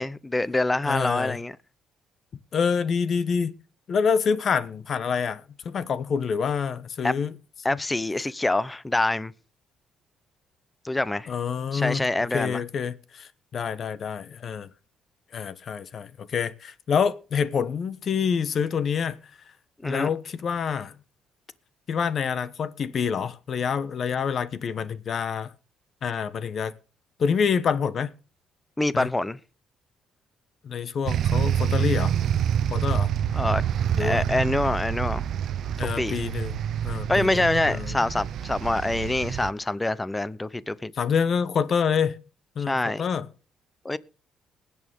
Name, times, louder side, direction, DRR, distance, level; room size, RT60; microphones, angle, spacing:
voice 1, 0.0-1.5 7.0-7.1 7.6-9.3 10.8-11.3 11.7-12.6 19.8-20.1 28.8-29.4 33.3-33.6 34.0-35.2 36.0-36.1 37.1-40.9 42.7-43.0 43.8-44.0, left 2 dB, 15° left, 0.8 m, -25 dB
voice 2, 0.8-1.4 2.5-3.5 3.9-7.4 7.7-7.8 11.3-12.0 12.3-14.7 15.3-19.2 19.8-20.9 21.9-25.5 26.0-26.7 27.2-28.1 28.9-29.1 30.6-32.1 32.7-33.1 34.0-34.2 35.8-38.0 41.0-42.2 42.5-43.3, left 6 dB, 55° left, 1.2 m, -27 dB
sound 1, 31.0-39.5, right 9 dB, 65° right, 0.7 m, -27 dB
20.0 x 8.5 x 3.7 m
cardioid pair, 80°, 0 cm